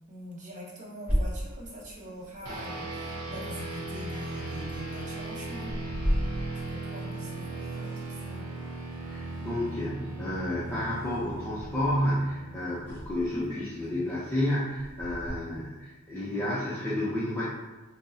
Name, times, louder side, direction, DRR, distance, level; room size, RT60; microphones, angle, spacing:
voice 1, 0.1-5.7 6.5-8.4 13.3-13.5, equal, 35° right, -3 dB, 0.8 m, -43 dB
sound 1, 1.1-15.3, equal, 10° right, 1.1 m, -38 dB
sound 2, 2.5-14.1, right 2 dB, 90° right, 0.8 m, -38 dB
voice 2, 9.0-17.5, left 1 dB, 10° left, -10 dB, 0.5 m, -31 dB
5.9 x 2.0 x 2.7 m, 1.2 s
head